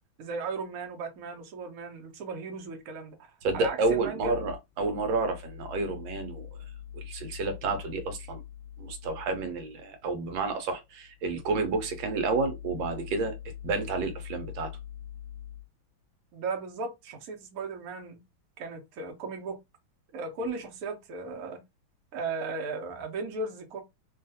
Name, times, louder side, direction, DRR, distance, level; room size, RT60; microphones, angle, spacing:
voice 1, 0.2-4.5 16.3-18.2 18.6-19.6 20.1-21.6 22.1-23.8, right 3 dB, 60° right, 0.9 m, -36 dB
voice 2, 3.4-6.5 6.9-8.4 8.8-13.4 13.6-14.7, right 3 dB, 80° right, 1.3 m, -30 dB
3.1 x 2.3 x 2.6 m
omnidirectional pair, 2.2 m